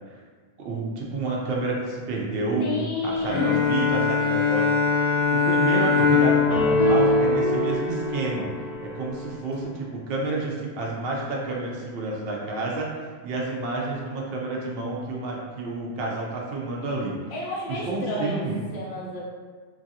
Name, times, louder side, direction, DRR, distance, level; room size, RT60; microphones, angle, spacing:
voice 1, 0.6-4.7 5.3-8.5 8.8-17.2 17.9-18.6, right 2 dB, 70° right, -2 dB, 0.8 m, -29 dB
voice 2, 2.6-3.8 17.3-18.5 18.7-19.2, left 2 dB, 80° left, -4 dB, 1.0 m, -31 dB
Bowed string instrument, 3.3-8.2, left 5 dB, 20° left, 0.6 m, -23 dB
sound 1, 6.0-9.2, left 1 dB, 50° left, 0.9 m, -23 dB
3.1 x 2.5 x 2.7 m, 1.5 s
omnidirectional pair, 1.1 m